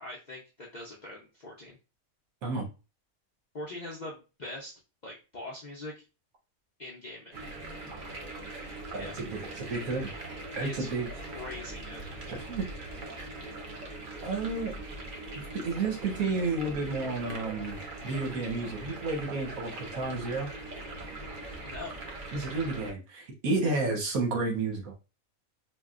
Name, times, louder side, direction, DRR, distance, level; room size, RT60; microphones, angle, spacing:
voice 1, 0.0-1.8 3.5-4.7 5.0-6.0 6.8-7.4 9.0-9.1 10.6-10.9 11.2-12.1 21.6-22.0, left 2 dB, 55° left, -4 dB, 0.5 m, -42 dB
sound 1, 7.3-22.9, right 2 dB, 50° right, 0.6 m, -41 dB
voice 2, 8.9-10.1 10.6-11.1 12.3-12.6 14.2-14.7 15.3-17.8 18.0-20.5 22.3-24.9, right 3 dB, 80° right, 1 dB, 1.3 m, -31 dB
3.4 x 2.2 x 2.3 m, 0.30 s
omnidirectional pair, 1.5 m